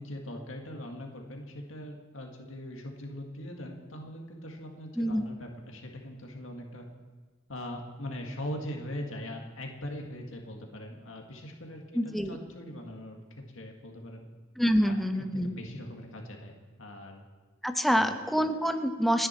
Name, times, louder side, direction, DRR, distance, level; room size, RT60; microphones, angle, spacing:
voice 1, 0.0-6.8 7.5-13.2 13.5-14.3 14.8-15.0 15.4-17.2 17.9-18.1, left 1 dB, 70° left, 2 dB, 2.1 m, -41 dB
voice 2, 5.0-5.3 11.9-12.4 14.6-15.6 17.6-19.3, equal, ahead, 6 dB, 1.0 m, -26 dB
29.5 x 10.0 x 4.5 m, 1.4 s
head